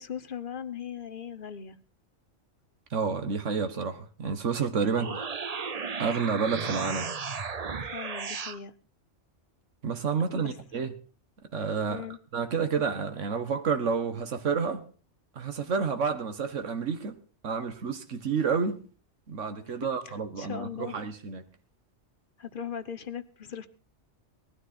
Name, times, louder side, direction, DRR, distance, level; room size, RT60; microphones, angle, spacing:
voice 1, 0.0-1.8 4.9-5.2 7.8-8.7 10.3-10.5 11.9-12.2 19.8-21.0 22.4-23.7, left 8 dB, 50° left, 1.0 m, -39 dB
voice 2, 2.9-5.3 6.0-7.1 9.8-10.9 11.5-12.0 12.3-14.9 15.3-17.2 17.4-18.8 19.3-21.5, right 5 dB, 85° right, 1.6 m, -29 dB
sound 1, 4.8-8.6, right 5 dB, 35° right, 0.8 m, -34 dB
19.0 x 12.5 x 4.3 m
omnidirectional pair, 1.2 m